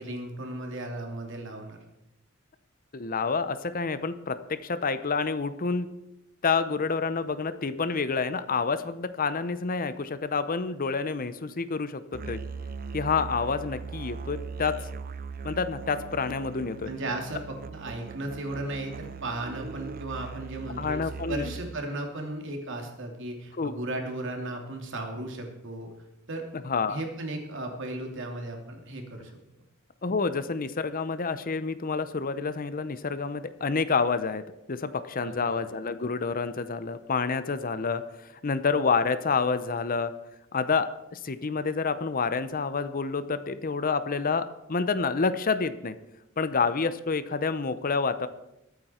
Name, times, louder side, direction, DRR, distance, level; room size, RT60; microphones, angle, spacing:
voice 1, 0.0-1.8 16.9-25.9 26.3-26.5 26.9-29.3 35.2-35.5, right 2 dB, 60° right, 3 dB, 2.7 m, -35 dB
voice 2, 2.9-5.9 6.4-12.4 12.9-14.8 15.4-16.9 20.8-21.5 23.6-23.8 26.6-27.0 30.0-34.4 34.7-40.1 40.5-45.9 46.4-48.3, left 4 dB, 45° left, 13 dB, 0.7 m, -28 dB
Musical instrument, 12.1-21.9, right 5 dB, 45° right, 0.6 m, -39 dB
21.5 x 8.9 x 4.4 m, 0.88 s
head